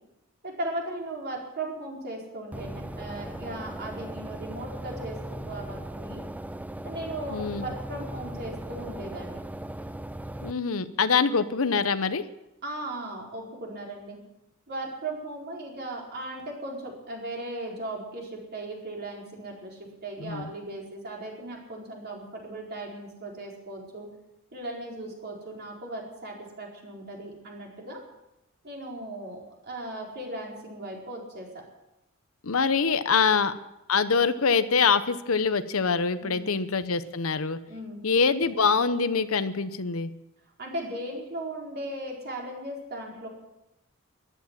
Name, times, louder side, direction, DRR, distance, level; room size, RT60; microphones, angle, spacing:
voice 1, 0.4-6.2 6.8-9.4 12.6-14.2 14.7-24.1 24.5-28.0 28.6-31.6 36.2-36.5 37.7-38.0 40.6-43.3, right 1 dB, 50° right, -2 dB, 4.5 m, -37 dB
sound 1, 2.5-10.5, right 1 dB, 5° right, 0.4 m, -38 dB
voice 2, 7.3-7.7 10.4-12.2 20.2-20.5 32.4-33.5 33.9-37.6 38.0-40.1, left 5 dB, 75° left, 12 dB, 0.9 m, -24 dB
14.5 x 11.5 x 7.5 m, 0.92 s
head